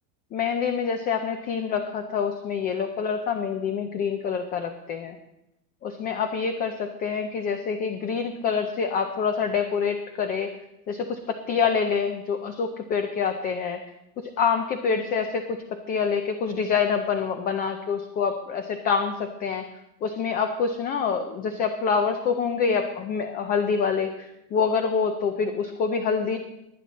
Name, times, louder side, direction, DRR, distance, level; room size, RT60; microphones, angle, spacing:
voice 1, 0.3-5.2 5.8-10.5 10.9-13.8 14.2-19.6 20.0-26.4, left 6 dB, 20° left, 7 dB, 0.5 m, -26 dB
19.5 x 10.0 x 4.1 m, 0.88 s
supercardioid pair, 165°, 42 cm